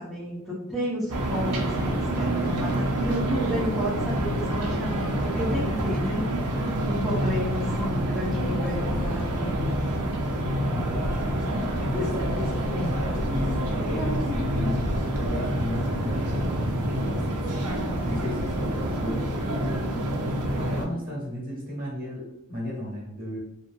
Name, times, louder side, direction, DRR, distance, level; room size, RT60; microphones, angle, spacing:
voice 1, 0.0-6.2 6.6-9.7 11.5-11.9 13.3-13.6 13.9-14.6, equal, ahead, -9 dB, 0.6 m, -32 dB
sound 1, 1.1-20.8, right 1 dB, 90° right, 0.6 m, -27 dB
voice 2, 10.6-11.4 11.8-17.4 18.1-19.9 20.5-23.4, left 1 dB, 40° right, -4 dB, 1.2 m, -35 dB
2.8 x 2.8 x 2.2 m, 0.92 s
head